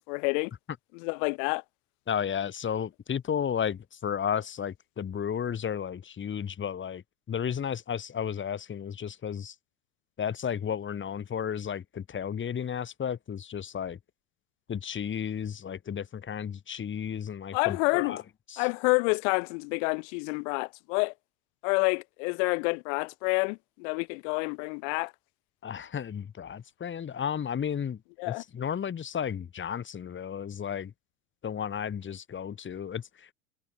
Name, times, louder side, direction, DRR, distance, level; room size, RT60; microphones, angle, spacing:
voice 1, 0.1-0.5 0.9-1.6 17.5-18.2 18.6-21.1 21.6-25.1 28.2-28.4, left 34 dB, 65° left, 5.4 m, -28 dB
voice 2, 2.1-7.0 7.3-9.6 10.2-14.0 14.7-18.2 18.5-18.7 25.6-28.0 28.3-30.9 31.4-33.3, left 8 dB, 30° left, 5.5 m, -33 dB
hypercardioid pair, 95°, 39 cm